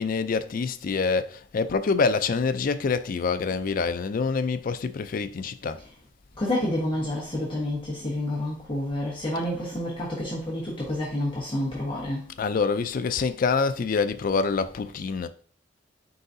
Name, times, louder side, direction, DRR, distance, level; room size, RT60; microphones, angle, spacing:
voice 1, 0.0-5.8 12.4-15.3, left 4 dB, 50° left, 0.4 m, -26 dB
voice 2, 6.4-12.3, left 1 dB, 30° left, 1.2 m, -29 dB
4.7 x 3.9 x 2.6 m
head